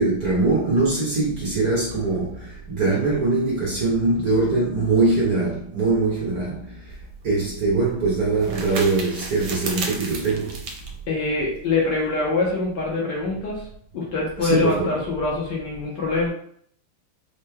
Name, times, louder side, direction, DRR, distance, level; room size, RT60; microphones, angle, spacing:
voice 1, 0.0-6.9 7.2-10.6 14.4-14.9, right 3 dB, 55° right, -5 dB, 1.1 m, -22 dB
sound 1, 6.9-12.1, right 3 dB, 75° right, 1.4 m, -35 dB
voice 2, 11.1-13.7 13.9-16.3, left 3 dB, 65° left, -4 dB, 1.3 m, -24 dB
4.5 x 3.1 x 2.2 m, 0.63 s
omnidirectional pair, 2.4 m